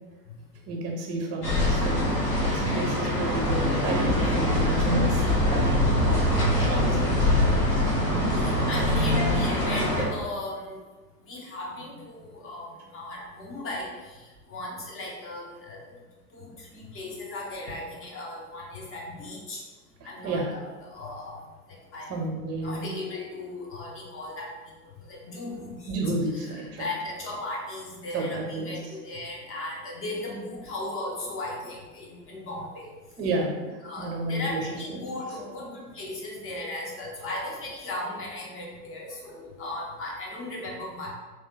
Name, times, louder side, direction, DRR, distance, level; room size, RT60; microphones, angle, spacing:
voice 1, 0.7-2.1 2.4-5.2 6.3-7.1 20.0-20.5 22.1-22.9 25.9-26.9 28.1-28.8 33.2-35.0, right 2 dB, 30° right, 1 dB, 0.9 m, -31 dB
sound 1, 1.4-10.0, left 1 dB, 80° left, 1.4 m, -23 dB
voice 2, 6.7-7.1 8.3-10.8 11.2-15.8 16.3-19.6 20.0-21.4 21.9-22.1 22.6-24.5 25.0-25.9 26.3-32.9 33.8-41.1, left 2 dB, 25° left, -3 dB, 1.0 m, -37 dB
3.5 x 3.2 x 2.9 m, 1.3 s
figure-of-eight pair, 90°, 47 cm